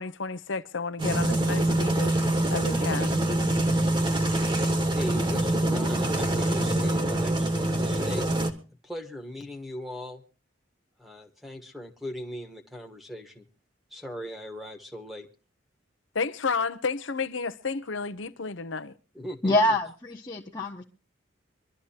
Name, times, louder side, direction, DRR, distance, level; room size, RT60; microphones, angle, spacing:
voice 1, 0.0-2.1 2.5-3.2 16.1-18.9, left 4 dB, 70° left, 0.8 m, -31 dB
sound 1, 1.0-8.5, right 1 dB, 25° right, 1.4 m, -25 dB
voice 2, 4.9-8.2 8.8-10.2 11.0-13.5 13.9-15.3 19.1-19.7, equal, ahead, 1.4 m, -38 dB
voice 3, 19.4-20.8, left 1 dB, 20° left, 1.2 m, -25 dB
25.0 x 12.5 x 2.9 m
head